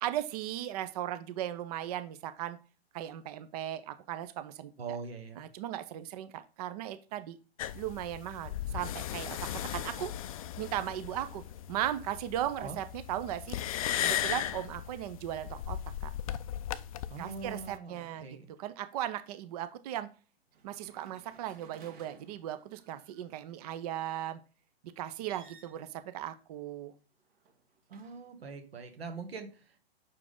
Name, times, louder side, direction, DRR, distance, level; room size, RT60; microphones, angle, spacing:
voice 1, 0.0-2.6 2.9-4.7 5.4-7.4 7.7-9.4 9.6-10.1 10.6-11.4 11.7-13.6 14.0-16.1 17.2-18.3 18.6-20.1 20.6-24.4 25.0-26.9, right 12 dB, 40° right, 11 dB, 0.6 m, -37 dB
voice 2, 4.8-5.4 12.6-12.8 17.1-18.5 27.9-29.8, right 5 dB, 75° right, 6 dB, 1.8 m, -42 dB
sound 1, 7.6-17.8, left 11 dB, 35° left, 0.4 m, -37 dB
sound 2, 15.9-16.2 16.5-18.6 20.5-23.5 25.1-25.9 27.1-28.5, right 5 dB, 55° right, 2.0 m, -60 dB
6.2 x 4.7 x 3.7 m, 0.36 s
hypercardioid pair, 125°, 31 cm